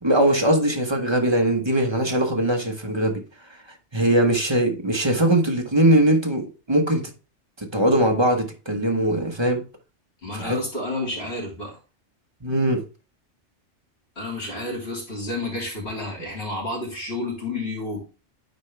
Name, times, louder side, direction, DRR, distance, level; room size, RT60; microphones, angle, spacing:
voice 1, 0.0-3.2 3.9-7.0 7.6-9.6 10.3-10.6 12.4-12.8, right 1 dB, 25° right, 1.2 m, -21 dB
voice 2, 10.2-11.8 14.1-18.0, left 2 dB, 55° left, 3.4 m, -30 dB
9.4 x 4.5 x 3.3 m
omnidirectional pair, 1.2 m